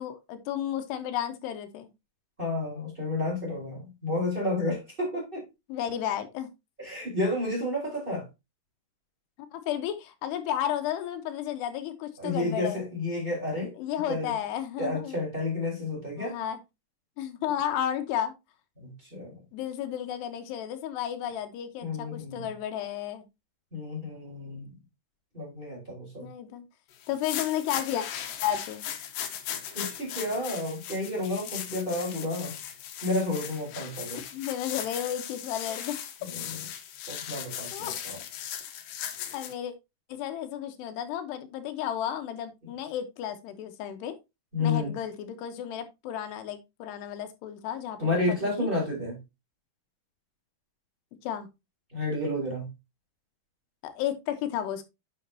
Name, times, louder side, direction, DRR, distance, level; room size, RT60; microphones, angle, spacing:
voice 1, 0.0-1.9 5.7-6.5 9.5-12.8 13.8-15.2 16.2-16.6 17.2-18.3 19.5-23.2 26.2-26.6 27.1-28.1 28.4-28.8 34.3-36.0 37.7-37.9 39.3-39.7 40.1-44.1 44.6-48.7 51.2-51.5 53.8-54.9, left 10 dB, 90° left, 3.1 m, -33 dB
voice 2, 2.4-5.4 6.8-8.3 12.2-13.7 14.1-14.3 14.8-16.4 18.8-19.4 21.8-22.4 23.7-24.7 25.3-26.3 29.7-32.5 33.0-34.2 36.3-36.6 37.1-38.2 44.5-44.9 48.0-49.2 51.9-52.7, left 2 dB, 15° right, 3.6 m, -31 dB
sound 1, 27.0-39.5, left 10 dB, 70° left, 2.4 m, -38 dB
9.8 x 6.4 x 2.7 m
omnidirectional pair, 4.7 m